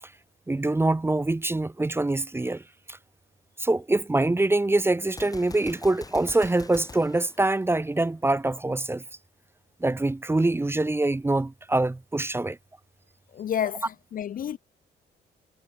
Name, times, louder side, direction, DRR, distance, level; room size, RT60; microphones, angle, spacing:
voice 1, 0.5-3.0 3.6-9.0 9.8-12.6, right 2 dB, 10° right, 0.6 m, -24 dB
Gunshot gunfire, 5.1-8.2, left 3 dB, 20° left, 1.2 m, -44 dB
voice 2, 13.3-14.6, left 9 dB, 45° left, 0.4 m, -30 dB
cardioid pair, 90°, 20 cm